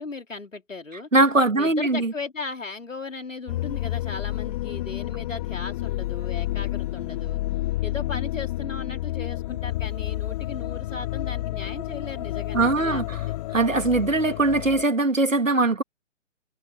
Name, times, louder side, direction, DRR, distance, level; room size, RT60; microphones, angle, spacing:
voice 1, 0.0-1.1 1.5-7.4 7.8-13.0, left 3 dB, 85° left, 4.0 m, -37 dB
voice 2, 1.1-2.1 12.5-13.2 13.5-15.8, right 2 dB, 90° right, 2.1 m, -21 dB
sound 1, 3.5-14.8, left 16 dB, 30° left, 1.3 m, -30 dB
figure-of-eight pair, 130°, 38 cm